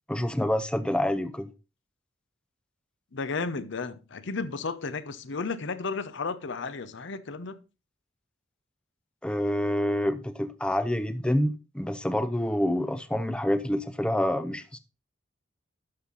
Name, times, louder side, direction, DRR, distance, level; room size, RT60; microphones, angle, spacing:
voice 1, 0.1-1.5 9.2-14.8, left 1 dB, 5° left, 0.5 m, -27 dB
voice 2, 3.1-7.6, left 4 dB, 65° left, 0.7 m, -33 dB
11.5 x 5.7 x 3.9 m
head